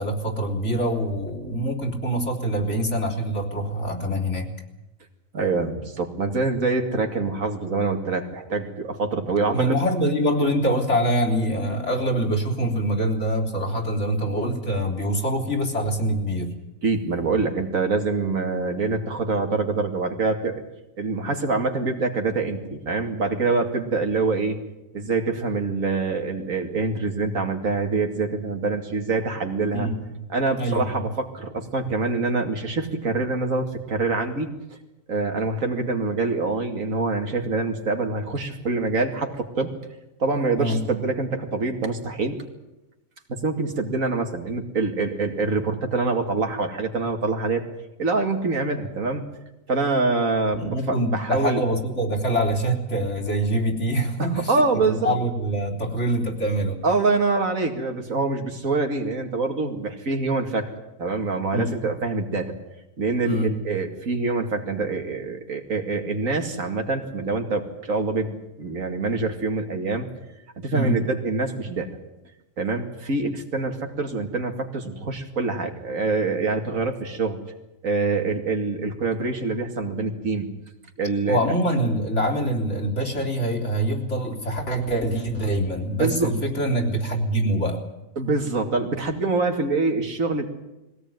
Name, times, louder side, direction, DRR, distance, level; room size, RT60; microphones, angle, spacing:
voice 1, 0.0-4.5 9.5-16.5 29.7-29.9 30.6-31.1 40.6-40.8 50.5-56.8 61.5-61.7 63.2-63.5 70.7-71.0 81.3-87.8, right 1 dB, 60° left, 1 dB, 3.7 m, -24 dB
voice 2, 5.3-9.7 16.8-20.6 21.0-24.6 24.9-29.9 30.3-34.5 35.1-39.7 40.2-42.4 43.3-47.6 48.0-49.2 49.7-51.6 54.2-55.2 56.8-60.7 61.0-62.5 63.0-70.1 70.6-71.9 72.6-77.4 77.8-80.5 81.0-81.4 86.0-86.3 88.2-90.5, right 3 dB, 90° right, 4 dB, 2.7 m, -25 dB
21.5 x 17.0 x 9.3 m, 0.98 s
omnidirectional pair, 1.4 m